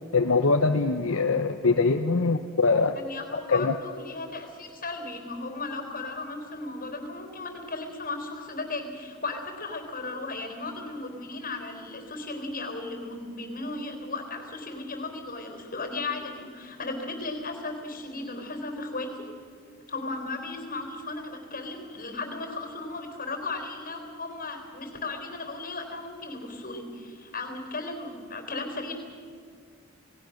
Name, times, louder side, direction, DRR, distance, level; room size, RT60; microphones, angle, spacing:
voice 1, 0.1-3.0 3.5-3.7, left 4 dB, 65° left, 6 dB, 0.8 m, -23 dB
voice 2, 2.9-19.3 19.9-28.9, left 3 dB, 40° left, 5 dB, 3.9 m, -36 dB
27.5 x 18.5 x 6.4 m, 2.2 s
head